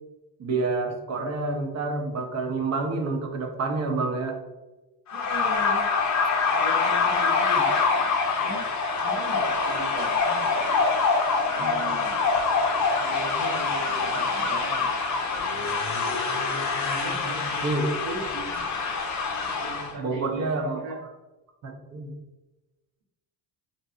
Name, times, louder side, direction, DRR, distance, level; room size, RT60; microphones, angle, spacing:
voice 1, 0.4-4.4 7.6-7.7 11.6-11.9 17.6-17.9 20.0-21.1 21.6-22.2, right 3 dB, 40° right, 3 dB, 0.6 m, -28 dB
sound 1, 5.1-19.9, left 4 dB, 40° left, 0.6 m, -25 dB
voice 2, 5.1-5.9 6.5-8.0 8.3-8.7 9.0-10.9 11.4-12.2 13.0-14.9 16.8-18.6 19.4-21.0, right 2 dB, 90° right, -4 dB, 1.1 m, -38 dB
3.2 x 2.8 x 2.4 m, 1.1 s
cardioid pair, 120°, 43 cm